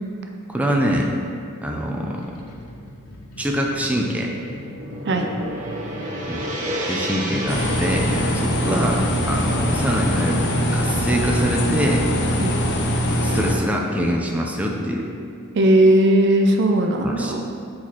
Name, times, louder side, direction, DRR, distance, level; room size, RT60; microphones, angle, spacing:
voice 1, 0.5-1.1 1.6-2.2 3.4-4.3 6.3-6.4 6.9-12.0 13.2-15.1 17.0-17.4, equal, 5° right, -1 dB, 0.6 m, -24 dB
sound 1, 1.5-6.7, equal, 80° left, 0.9 m, -40 dB
Gong, 4.1-12.5, right 1 dB, 35° right, 1.1 m, -33 dB
sound 2, 7.5-13.5, equal, 50° left, 0.8 m, -22 dB
voice 2, 15.5-17.4, right 1 dB, 55° right, 3 dB, 0.6 m, -17 dB
8.6 x 4.2 x 4.4 m, 2.4 s
head